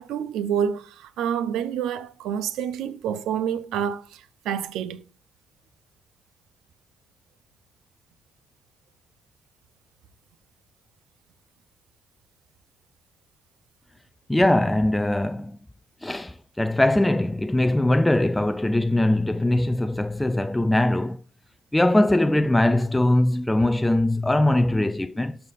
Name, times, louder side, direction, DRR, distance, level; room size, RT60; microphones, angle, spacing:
voice 1, 0.0-5.0, right 8 dB, 90° right, 0.7 m, -28 dB
voice 2, 14.3-15.6 16.0-21.2 21.7-25.4, left 1 dB, 10° left, 0.4 m, -21 dB
12.0 x 5.7 x 2.5 m
cardioid pair, 90°, 0 cm